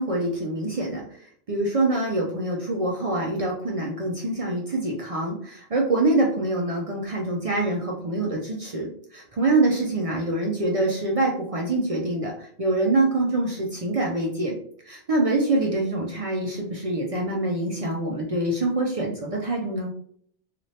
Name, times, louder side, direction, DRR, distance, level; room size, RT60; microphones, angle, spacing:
voice 1, 0.0-14.5 14.8-19.9, right 2 dB, 50° right, -2 dB, 0.4 m, -25 dB
2.7 x 2.4 x 3.1 m, 0.63 s
omnidirectional pair, 1.1 m